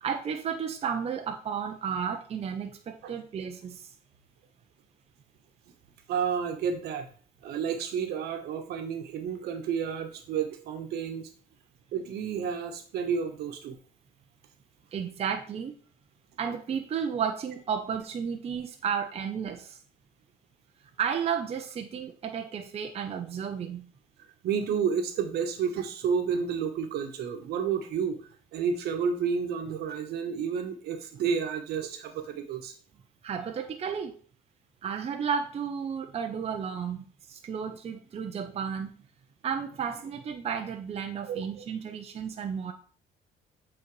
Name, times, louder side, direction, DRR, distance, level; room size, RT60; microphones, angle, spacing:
voice 1, 0.0-3.9 14.9-15.7 16.4-19.8 21.0-23.8 33.2-34.1 34.8-38.9 39.4-42.7, right 7 dB, 35° right, 5 dB, 0.7 m, -33 dB
voice 2, 6.1-7.1 7.4-11.3 11.9-13.8 24.4-32.7 41.3-41.6, right 6 dB, 75° right, 5 dB, 1.2 m, -31 dB
8.1 x 4.1 x 3.2 m, 0.44 s
cardioid pair, 110°, 17 cm